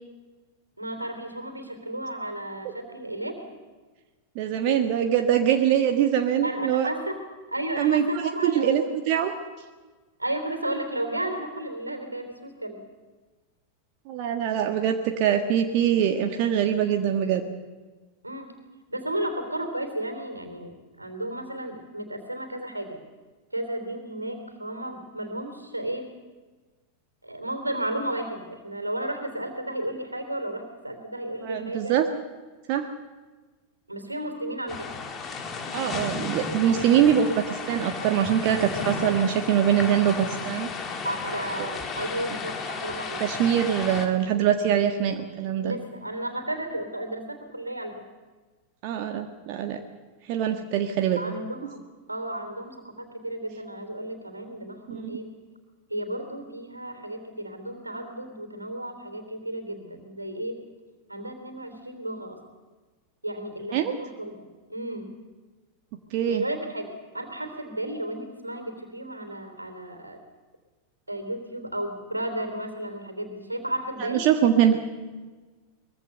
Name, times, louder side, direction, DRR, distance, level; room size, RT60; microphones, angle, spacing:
voice 1, 0.8-3.4 4.6-4.8 6.4-7.2 7.5-8.9 10.2-12.8 18.2-18.5 18.9-23.0 23.5-26.2 27.2-31.9 33.9-34.9 41.0-43.2 45.6-47.9 51.2-55.4 55.9-60.6 61.1-62.4 63.2-64.3 64.7-65.2 66.3-70.2 71.1-74.3, right 1 dB, 85° right, 7 dB, 3.4 m, -33 dB
voice 2, 4.3-6.9 7.8-9.4 14.1-17.4 31.4-32.0 32.7-32.9 35.7-40.7 41.6-41.7 43.2-45.8 48.8-49.8 50.2-51.2 54.9-55.2 63.7-63.9 66.1-66.4 74.0-74.8, right 9 dB, 45° right, 5 dB, 1.6 m, -23 dB
sound 1, 34.7-44.1, left 4 dB, 25° left, 3.1 m, -34 dB
23.0 x 22.0 x 6.8 m, 1.3 s
figure-of-eight pair, 90°, 0 cm